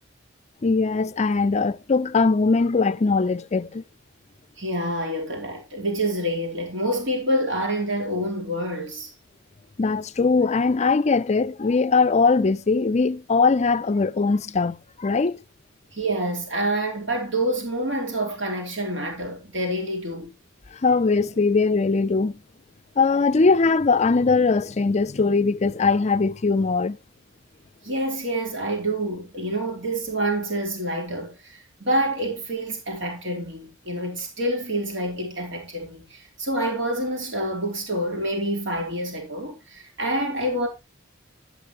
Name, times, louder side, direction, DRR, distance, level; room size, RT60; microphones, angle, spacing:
voice 1, 0.6-3.8 9.8-15.4 20.8-22.4 23.0-27.0, left 4 dB, 35° left, 0.5 m, -21 dB
voice 2, 4.6-9.1 15.9-20.3 27.8-40.7, right 1 dB, 65° right, 3.6 m, -27 dB
11.5 x 8.7 x 3.0 m
head